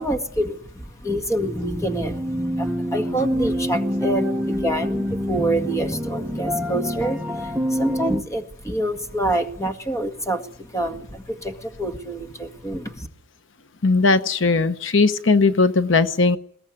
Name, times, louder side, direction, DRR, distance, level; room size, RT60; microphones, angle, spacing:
voice 1, 0.0-13.1, right 1 dB, 15° left, 6 dB, 1.7 m, -27 dB
sound 1, 1.4-8.2, equal, 5° right, 0.9 m, -26 dB
voice 2, 13.8-16.4, left 3 dB, 70° left, 12 dB, 0.9 m, -18 dB
21.0 x 18.0 x 9.6 m, 0.69 s
head